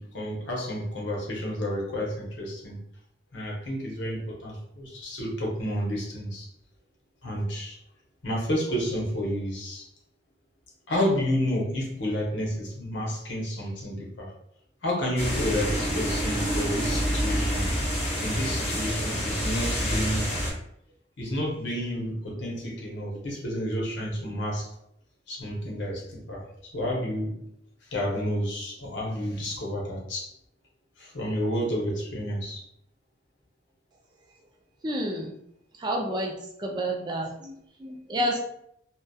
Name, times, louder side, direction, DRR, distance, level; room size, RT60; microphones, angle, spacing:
voice 1, 0.0-2.9 3.3-6.5 7.2-7.8 8.2-9.9 10.9-14.3 14.8-17.7 18.2-20.3 21.2-24.7 25.3-27.4 27.8-30.3 31.0-32.6, equal, 80° left, -2 dB, 0.8 m, -30 dB
sound 1, 15.2-20.5, equal, 35° left, 0.7 m, -27 dB
voice 2, 34.8-35.3 35.8-38.4, equal, 25° right, 1 dB, 0.3 m, -30 dB
2.7 x 2.1 x 2.2 m, 0.72 s
head